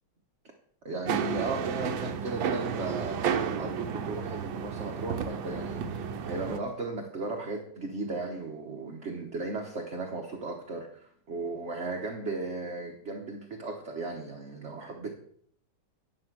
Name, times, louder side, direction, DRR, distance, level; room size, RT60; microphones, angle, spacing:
voice 1, 0.8-3.2 3.5-15.2, right 3 dB, 40° right, 1 dB, 1.2 m, -36 dB
sound 1, 1.1-6.6, right 7 dB, 75° right, 1.6 m, -32 dB
10.5 x 6.0 x 6.2 m, 0.64 s
omnidirectional pair, 2.3 m